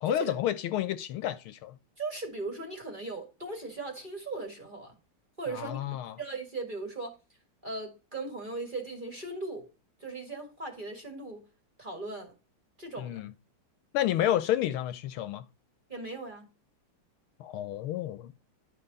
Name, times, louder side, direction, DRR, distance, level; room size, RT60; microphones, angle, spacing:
voice 1, 0.0-1.8 5.5-6.2 13.0-13.3 13.9-15.4 17.4-18.3, left 12 dB, 75° left, 1.5 m, -30 dB
voice 2, 2.0-4.9 5.4-7.2 7.6-9.7 10.0-11.5 11.8-12.3 12.8-13.2 15.9-16.5, right 3 dB, 25° right, 1.8 m, -38 dB
11.0 x 5.2 x 4.0 m
omnidirectional pair, 2.4 m